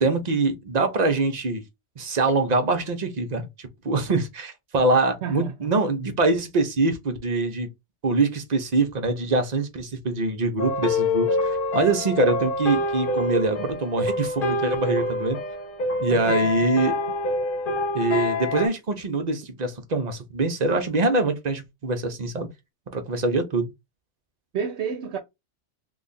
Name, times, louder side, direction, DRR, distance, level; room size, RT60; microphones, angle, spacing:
voice 1, 0.0-1.6 2.0-7.7 8.0-15.4 16.0-17.0 17.9-22.5 22.9-23.7, right 3 dB, 45° right, 0.7 m, -24 dB
voice 2, 5.2-5.7 16.1-16.7 24.5-25.2, right 7 dB, 75° right, 0.9 m, -31 dB
sound 1, 10.6-18.7, left 2 dB, 55° left, 0.9 m, -26 dB
3.1 x 2.4 x 3.9 m
omnidirectional pair, 1.2 m